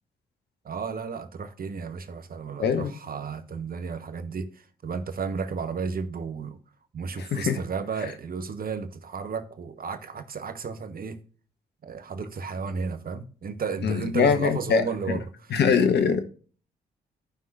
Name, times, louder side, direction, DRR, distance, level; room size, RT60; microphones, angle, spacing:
voice 1, 0.6-6.6 6.9-11.2 11.8-15.2, right 5 dB, 50° right, 1.2 m, -33 dB
voice 2, 2.6-2.9 7.2-7.6 13.8-14.8 15.1-15.2 15.5-16.3, left 6 dB, 65° left, 1.2 m, -23 dB
15.0 x 5.6 x 2.6 m
hypercardioid pair, 40°, 19 cm